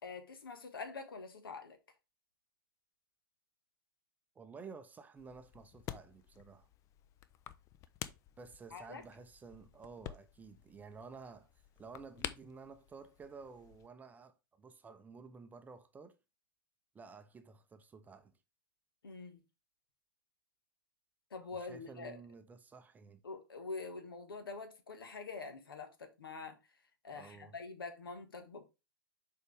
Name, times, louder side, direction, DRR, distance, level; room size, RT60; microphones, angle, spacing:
voice 1, 0.0-1.8 8.7-9.0 19.0-19.4 21.3-22.2 23.2-26.6 27.0-28.6, left 4 dB, 75° left, 1.7 m, -45 dB
voice 2, 4.3-6.7 8.4-16.2 16.9-18.4 21.6-23.2 27.1-27.5, right 5 dB, 15° right, 0.6 m, -53 dB
sound 1, 5.2-13.9, left 11 dB, 25° left, 0.5 m, -50 dB
6.5 x 4.6 x 3.5 m
figure-of-eight pair, 110°, 12 cm